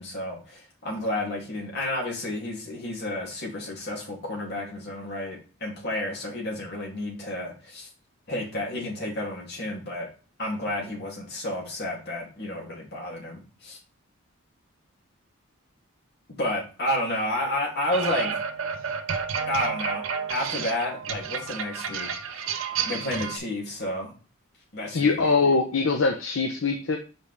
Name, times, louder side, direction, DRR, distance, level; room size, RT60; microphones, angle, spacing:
voice 1, 0.0-7.9 8.3-10.1 10.4-13.8 16.4-18.4 19.5-22.1 22.8-24.1 24.7-25.3, left 1 dB, 55° left, -2 dB, 2.9 m, -31 dB
sound 1, 17.9-23.4, right 6 dB, 75° right, 0.7 m, -31 dB
voice 2, 24.9-27.0, left 4 dB, 70° left, 3 dB, 0.8 m, -22 dB
5.3 x 5.3 x 3.4 m, 0.35 s
head